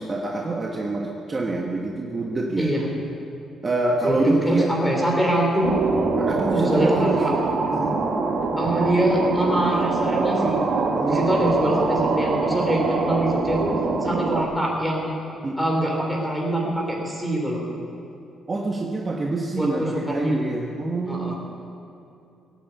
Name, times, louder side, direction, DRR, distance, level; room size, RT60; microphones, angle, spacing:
voice 1, 0.0-2.7 3.6-4.9 6.2-7.2 7.7-7.9 11.0-11.4 15.4-15.7 18.5-21.3, right 2 dB, 25° right, 0 dB, 1.3 m, -26 dB
voice 2, 2.6-2.9 4.0-5.8 6.5-7.3 8.6-10.6 11.1-13.7 14.0-15.1 15.6-17.6 19.6-20.4 21.1-21.3, right 1 dB, 5° left, -1 dB, 3.9 m, -24 dB
sound 1, 5.6-14.4, right 4 dB, 50° right, 2.0 m, -24 dB
18.0 x 9.2 x 8.4 m, 2.7 s
cardioid pair, 125°, 0 cm